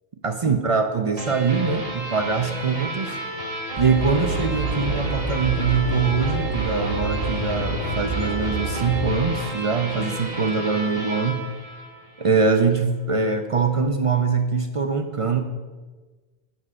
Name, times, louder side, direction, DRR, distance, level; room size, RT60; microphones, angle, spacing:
voice 1, 0.2-3.2 3.8-11.4 12.2-15.4, right 5 dB, 45° right, 7 dB, 0.5 m, -23 dB
sound 1, 1.2-12.4, right 2 dB, 60° right, 1.8 m, -32 dB
sound 2, 3.8-9.1, right 2 dB, 75° right, 2.5 m, -28 dB
8.0 x 5.3 x 6.3 m, 1.3 s
omnidirectional pair, 1.1 m